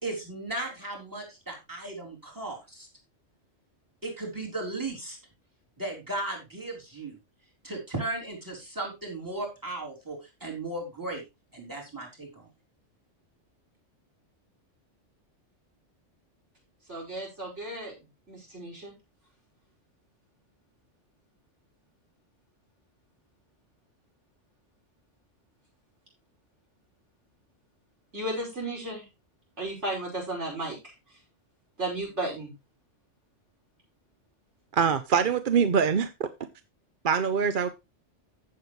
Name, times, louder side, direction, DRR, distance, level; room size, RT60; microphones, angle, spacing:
voice 1, 0.0-2.9 4.0-5.2 5.8-7.2 7.6-11.2 11.5-12.5, right 2 dB, 15° right, 3.7 m, -36 dB
voice 2, 16.9-17.9 18.3-18.9 28.1-29.0 29.6-30.8 31.8-32.5, right 1 dB, 70° right, 5.8 m, -34 dB
voice 3, 34.7-36.3 37.0-37.7, right 6 dB, 50° right, 0.7 m, -24 dB
15.0 x 6.8 x 3.1 m
omnidirectional pair, 1.2 m